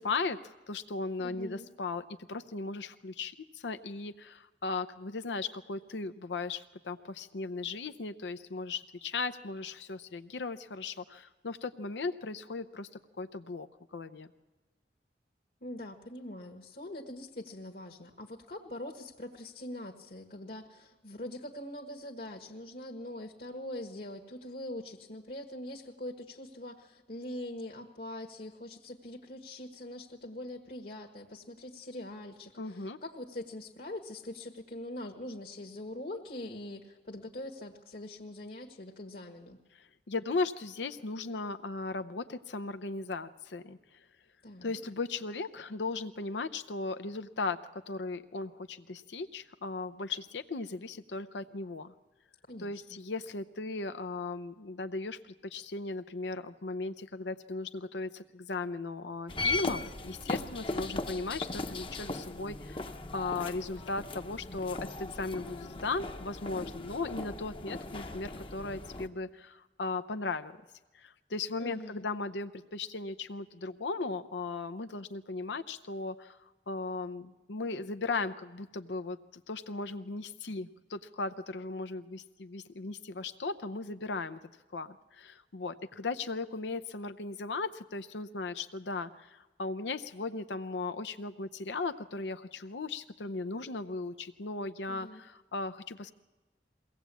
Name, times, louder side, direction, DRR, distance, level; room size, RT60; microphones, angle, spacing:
voice 1, 0.0-12.9 13.2-14.3 32.6-33.0 39.7-44.1 44.6-51.9 52.6-70.5 70.9-76.4 76.7-79.2 79.5-84.4 84.7-96.1, left 3 dB, 85° left, 10 dB, 0.7 m, -37 dB
voice 2, 1.2-1.7 15.6-39.6 44.4-44.8 52.5-53.0 71.6-72.1 94.9-95.2, left 1 dB, 55° left, 2 dB, 1.5 m, -43 dB
sound 1, 59.3-69.1, left 2 dB, 30° left, 0.9 m, -38 dB
22.0 x 17.5 x 8.3 m, 1.2 s
head